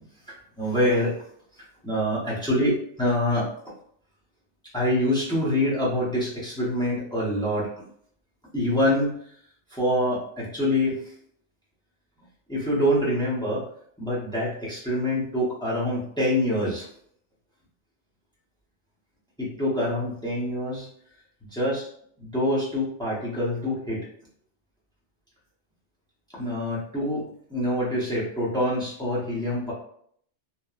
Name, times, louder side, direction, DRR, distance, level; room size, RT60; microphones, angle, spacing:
voice 1, 0.3-1.2 1.8-3.7 4.7-7.9 8.5-9.2 9.7-11.1 12.5-13.7 14.0-16.9 19.4-20.9 21.5-21.8 22.2-24.1 26.3-29.7, left 1 dB, 5° left, -7 dB, 0.5 m, -25 dB
2.9 x 2.2 x 2.3 m, 0.65 s
omnidirectional pair, 1.3 m